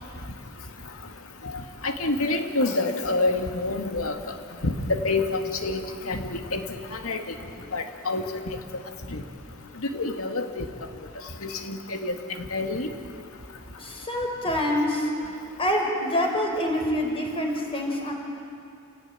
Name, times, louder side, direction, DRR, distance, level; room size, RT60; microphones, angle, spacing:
voice 1, 1.8-4.2 4.6-6.6 6.9-7.2 7.7-8.3 9.1-9.2 9.8-10.6 11.4-12.9, left 2 dB, 85° left, 5 dB, 2.1 m, -27 dB
voice 2, 13.8-15.1 15.6-18.1, left 1 dB, 25° left, 1 dB, 4.9 m, -26 dB
29.5 x 18.0 x 8.9 m, 2.4 s
head